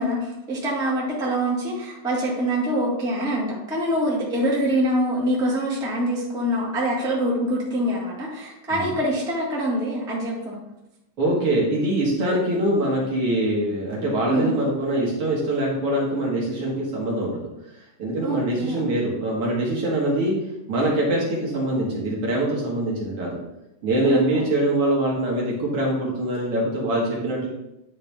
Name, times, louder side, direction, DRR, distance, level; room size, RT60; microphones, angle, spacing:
voice 1, 0.0-10.5 14.3-14.5 18.2-18.8 24.0-24.4, equal, 5° right, -5 dB, 0.7 m, -25 dB
voice 2, 11.2-17.4 18.0-20.3 20.7-23.4 23.8-27.5, right 1 dB, 55° right, -3 dB, 2.1 m, -23 dB
10.0 x 3.8 x 3.4 m, 0.90 s
omnidirectional pair, 3.5 m